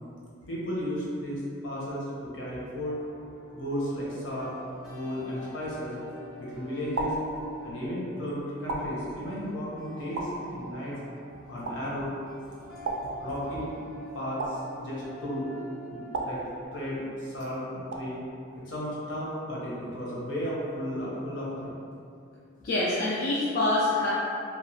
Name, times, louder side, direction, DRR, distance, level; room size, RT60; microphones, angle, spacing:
voice 1, 0.5-2.9 3.5-4.5 4.8-5.9 6.4-7.2 7.6-10.9 11.5-12.1 13.2-13.7 14.1-15.5 15.9-18.2 18.7-21.7, equal, 70° left, -6 dB, 0.8 m, -34 dB
sound 1, 2.8-16.7, right 1 dB, ahead, 0.7 m, -46 dB
sound 2, 5.8-6.3 6.9-7.9 8.7-9.5 10.1-11.0 11.6-12.3 12.8-13.8 14.4-15.3 16.1-17.1 17.9-18.5, right 2 dB, 80° right, 0.3 m, -36 dB
voice 2, 22.6-24.1, left 2 dB, 50° left, -7 dB, 0.3 m, -25 dB
2.8 x 2.4 x 2.7 m, 2.5 s
head